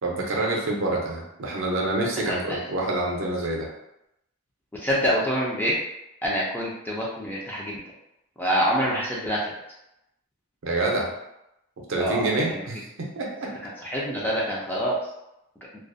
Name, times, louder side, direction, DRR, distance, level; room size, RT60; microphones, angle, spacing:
voice 1, 0.0-3.7 10.6-11.1 11.9-13.5, right 2 dB, 60° right, -2 dB, 0.5 m, -27 dB
voice 2, 2.3-2.6 4.7-5.7 6.2-7.8 8.4-9.5 12.0-12.6 13.8-15.0, equal, 10° left, -5 dB, 0.3 m, -26 dB
2.3 x 2.1 x 2.5 m, 0.85 s
head